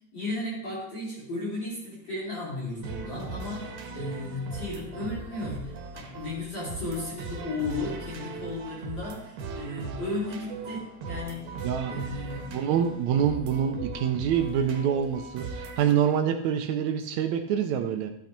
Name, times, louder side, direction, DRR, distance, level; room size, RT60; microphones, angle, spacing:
voice 1, 0.1-11.5 11.9-12.4, left 2 dB, 35° left, -7 dB, 3.5 m, -34 dB
sound 1, 2.8-15.9, right 4 dB, 65° right, 2.5 m, -39 dB
voice 2, 11.6-12.0 12.5-15.5 15.8-18.1, right 8 dB, 80° right, 6 dB, 1.6 m, -26 dB
13.5 x 8.2 x 4.4 m, 0.76 s
omnidirectional pair, 4.2 m